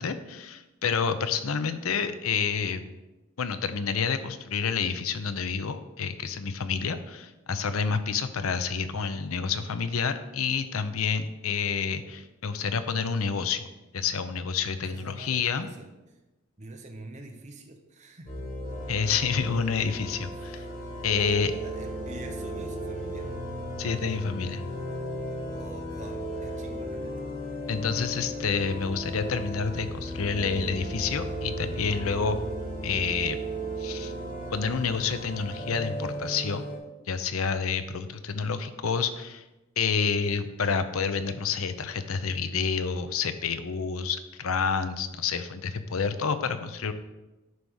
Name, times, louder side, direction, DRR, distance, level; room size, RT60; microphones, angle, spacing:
voice 1, 0.0-2.8 3.4-13.7 13.9-15.7 18.9-20.6 21.0-21.5 23.8-24.6 27.7-32.4 32.8-33.4 33.8-34.1 34.5-36.7 37.1-39.4 39.8-46.9, left 5 dB, 85° left, 10 dB, 0.6 m, -29 dB
voice 2, 14.8-16.2 16.6-18.5 20.4-20.8 21.2-23.3 25.5-27.1, right 2 dB, 35° right, 3 dB, 0.9 m, -45 dB
sound 1, 18.3-36.8, equal, 40° left, 2.0 m, -35 dB
9.3 x 3.5 x 6.3 m, 1.0 s
head